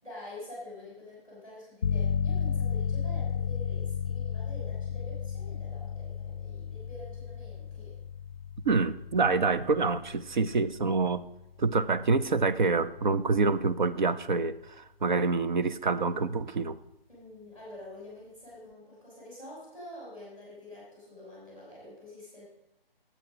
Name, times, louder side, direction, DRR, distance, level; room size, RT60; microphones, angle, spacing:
voice 1, 0.0-8.0 17.1-22.4, left 1 dB, 15° right, -6 dB, 4.8 m, -47 dB
sound 1, 1.8-12.3, left 7 dB, 50° left, 0.6 m, -34 dB
voice 2, 8.6-11.3 11.6-16.8, right 4 dB, 50° right, 13 dB, 0.6 m, -27 dB
10.0 x 8.0 x 5.0 m, 0.87 s
hypercardioid pair, 165°, 30 cm